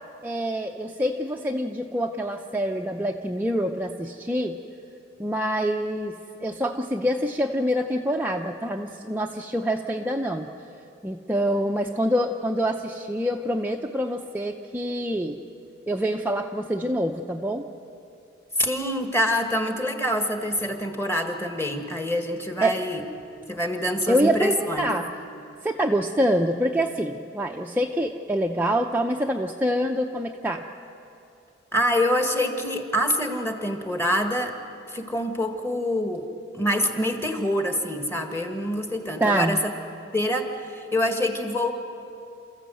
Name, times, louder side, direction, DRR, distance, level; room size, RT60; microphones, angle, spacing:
voice 1, 0.2-4.5 5.2-10.5 11.0-15.4 15.9-17.7 22.6-22.8 24.1-25.1 25.6-30.6 39.2-39.6, equal, 10° right, 1 dB, 0.6 m, -26 dB
voice 2, 18.6-23.0 23.5-24.9 31.7-34.6 34.9-36.2 36.5-39.7 40.1-41.7, equal, 15° left, 5 dB, 1.7 m, -26 dB
29.0 x 14.5 x 7.8 m, 2.7 s
head